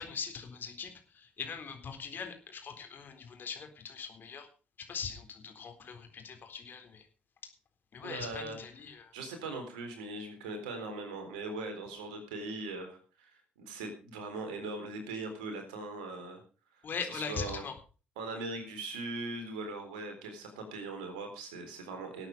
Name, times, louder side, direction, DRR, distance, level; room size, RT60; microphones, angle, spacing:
voice 1, 0.0-4.5 4.9-7.0 7.9-9.1 16.8-17.7, left 6 dB, 45° left, 6 dB, 4.0 m, -41 dB
voice 2, 8.0-8.6 9.1-16.4 17.1-17.6 18.2-22.3, right 2 dB, 75° right, 6 dB, 4.0 m, -40 dB
18.5 x 9.0 x 5.3 m, 0.36 s
figure-of-eight pair, 45°, 5 cm